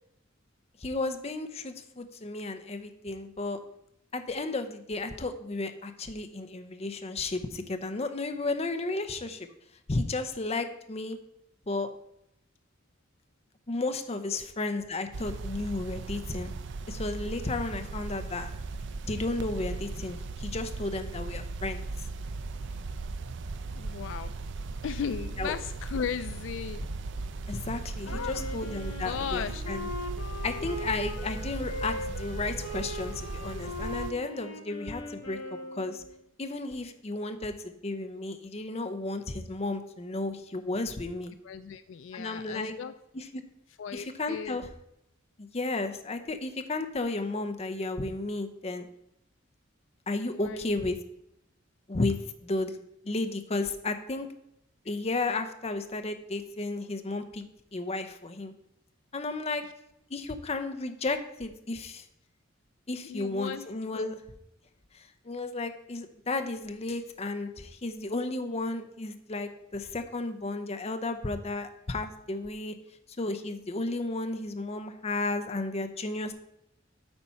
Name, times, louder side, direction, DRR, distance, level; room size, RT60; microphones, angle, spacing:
voice 1, 0.8-3.6 4.1-9.5 9.9-11.2 11.7-11.9 13.7-16.5 16.9-18.5 19.1-22.1 25.4-25.5 27.5-29.9 30.4-35.4 35.7-36.0 36.4-41.3 42.1-42.7 43.1-43.4 43.9-44.7 45.4-48.9 50.1-51.0 51.9-54.3 54.9-57.5 57.7-58.5 59.1-59.6 60.1-62.0 62.9-64.2 64.9-72.7 73.2-76.3, left 2 dB, 30° left, 8 dB, 0.6 m, -33 dB
sound 1, 15.1-34.1, right 3 dB, 60° right, 0.5 m, -37 dB
voice 2, 23.7-24.3 24.8-26.8 28.1-28.5 29.0-29.6 41.4-42.9 43.8-44.7 50.3-50.7 59.6-59.7 63.0-63.7 63.9-64.1, left 7 dB, 65° left, 13 dB, 0.3 m, -36 dB
Wind instrument woodwind instrument, 28.0-36.2, left 1 dB, 90° left, 1.3 m, -40 dB
8.8 x 4.3 x 5.6 m, 0.79 s
head